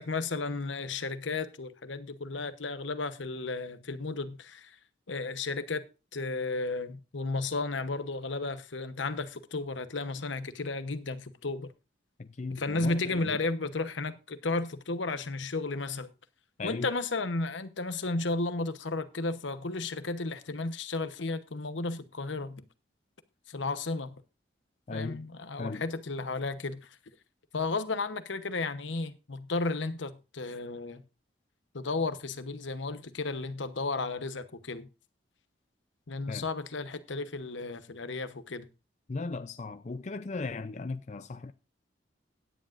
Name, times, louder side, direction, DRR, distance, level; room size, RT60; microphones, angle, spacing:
voice 1, 0.0-4.8 5.1-5.8 6.1-11.7 12.5-16.1 16.6-22.6 23.5-24.1 24.9-27.0 27.5-31.0 31.7-34.9 36.1-38.7, left 3 dB, 80° left, 1.0 m, -33 dB
voice 2, 12.2-13.4 16.6-16.9 24.9-25.2 25.6-25.8 36.3-36.4 39.1-41.5, left 3 dB, 40° left, 0.5 m, -37 dB
16.5 x 10.0 x 2.5 m
head